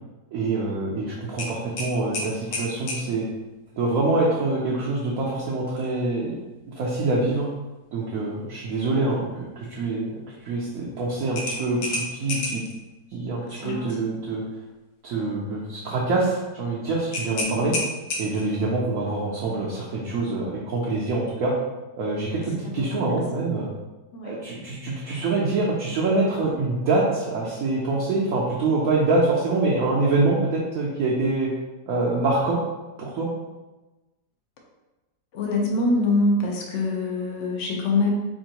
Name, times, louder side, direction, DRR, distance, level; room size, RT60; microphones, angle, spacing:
voice 1, 0.3-3.3 3.8-6.4 6.8-7.5 7.9-12.6 13.1-14.5 15.0-17.7 18.2-21.5 22.0-23.7 24.2-31.5 31.9-32.6 33.0-33.3, right 3 dB, 65° right, -5 dB, 0.9 m, -25 dB
sound 1, 1.4-3.1 5.7-5.9 6.3-6.4 11.4-12.7 17.1-18.6, left 2 dB, 85° left, 1.3 m, -30 dB
voice 2, 13.5-14.0 17.3-17.8 22.6-23.2 24.1-24.3 35.3-38.1, left 2 dB, 60° left, 0 dB, 0.9 m, -25 dB
4.5 x 2.5 x 2.9 m, 1.1 s
omnidirectional pair, 1.8 m